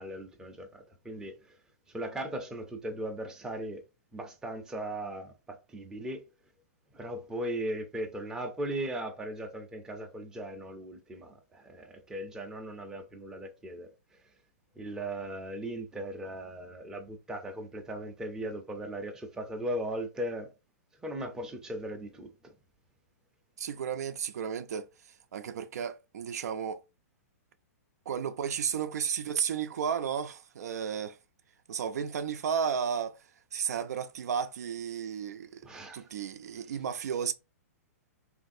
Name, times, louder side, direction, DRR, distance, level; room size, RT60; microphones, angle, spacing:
voice 1, 0.0-1.6 1.9-3.8 4.1-6.2 6.9-13.9 14.8-20.5 21.0-22.5 35.6-36.1, right 1 dB, 5° right, 0.5 m, -38 dB
voice 2, 23.6-24.9 25.3-26.8 28.1-31.2 31.7-33.2 33.5-37.3, right 7 dB, 80° right, 0.4 m, -33 dB
3.1 x 2.5 x 2.6 m
hypercardioid pair, 145°, 9 cm